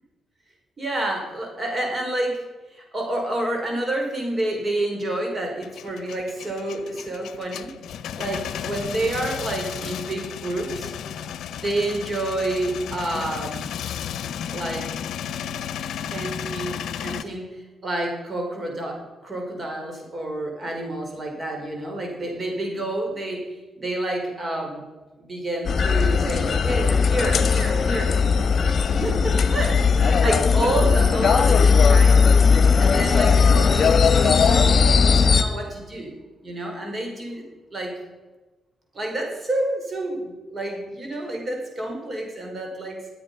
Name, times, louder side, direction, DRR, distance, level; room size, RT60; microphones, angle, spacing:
voice 1, 0.8-2.4 2.7-7.7 8.2-10.9 11.6-13.7 14.5-15.0 16.1-17.5 17.8-23.4 23.8-24.8 25.2-28.2 28.7-32.2 32.8-36.1 36.4-37.4 37.7-37.9 38.9-43.0, right 1 dB, 35° right, 1 dB, 4.7 m, -29 dB
Male speech man speaking / Vehicle / Engine starting, 5.6-17.2, left 9 dB, 80° left, 0.7 m, -33 dB
sound 1, 25.6-35.4, left 5 dB, 50° left, 1.3 m, -18 dB
22.0 x 8.0 x 5.5 m, 1.2 s
cardioid pair, 80°, 0 cm